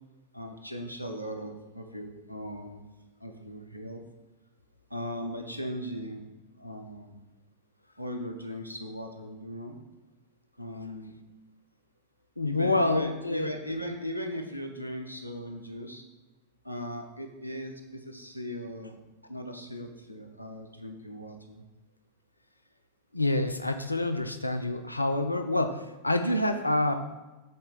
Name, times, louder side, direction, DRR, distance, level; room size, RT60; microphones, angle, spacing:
voice 1, 0.3-2.8 3.2-4.0 4.9-6.2 6.6-7.2 8.0-9.8 10.6-11.1 12.4-16.0 16.6-19.0 19.3-21.6, equal, 90° right, 4 dB, 0.7 m, -38 dB
voice 2, 12.4-13.5 23.1-27.0, left 2 dB, 85° left, 8 dB, 0.4 m, -27 dB
7.5 x 4.3 x 4.0 m, 1.1 s
figure-of-eight pair, 90°, 0 cm